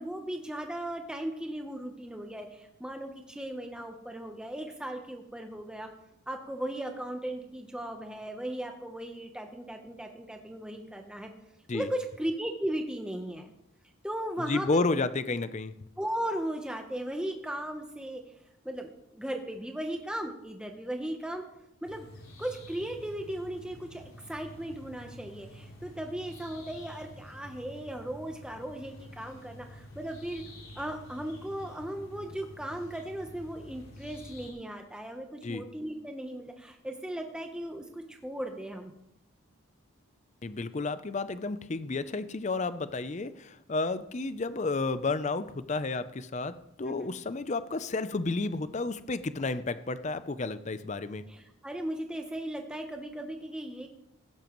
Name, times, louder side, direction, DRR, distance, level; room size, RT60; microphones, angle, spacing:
voice 1, 0.0-5.9 6.3-11.3 11.7-13.5 14.0-14.8 16.0-18.2 18.6-21.4 21.8-22.1 22.4-30.4 30.7-38.9 46.8-47.2 51.3-53.9, right 1 dB, 5° right, 3 dB, 0.8 m, -37 dB
voice 2, 14.5-15.7 35.4-35.6 40.4-51.2, left 3 dB, 35° left, 13 dB, 0.5 m, -31 dB
sound 1, 21.8-34.5, left 1 dB, 80° left, 3.9 m, -49 dB
16.0 x 12.0 x 3.1 m, 0.82 s
head